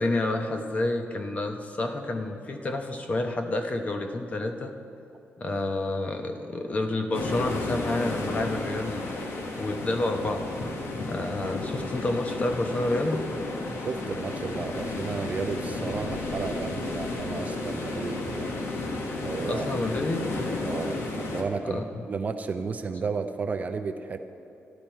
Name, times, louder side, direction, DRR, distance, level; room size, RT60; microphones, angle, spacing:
voice 1, 0.0-4.7 5.4-9.0 9.6-10.4 11.0-13.2 19.5-20.3 21.6-22.0, left 2 dB, 35° left, 5 dB, 0.8 m, -29 dB
sound 1, 7.1-21.4, left 2 dB, 75° left, 1.4 m, -32 dB
voice 2, 13.8-18.7 19.2-19.6 20.6-24.2, right 4 dB, 35° right, 8 dB, 0.5 m, -33 dB
13.5 x 11.0 x 4.4 m, 2.8 s
wide cardioid pair, 150°, 4 cm